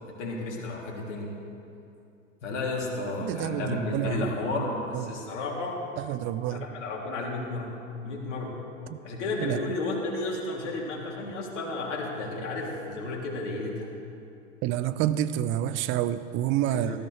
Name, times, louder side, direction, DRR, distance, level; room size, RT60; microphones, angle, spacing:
voice 1, 0.2-1.3 2.4-5.8 6.5-7.8 8.0-8.5 9.0-13.9 16.7-17.0, left 2 dB, 65° left, -2 dB, 3.1 m, -32 dB
voice 2, 3.2-4.3 4.9-5.2 6.0-6.7 8.9-9.0 9.4-9.7 14.6-17.0, right 12 dB, 30° right, 13 dB, 0.6 m, -28 dB
18.5 x 14.0 x 3.4 m, 2.6 s
hypercardioid pair, 95°, 39 cm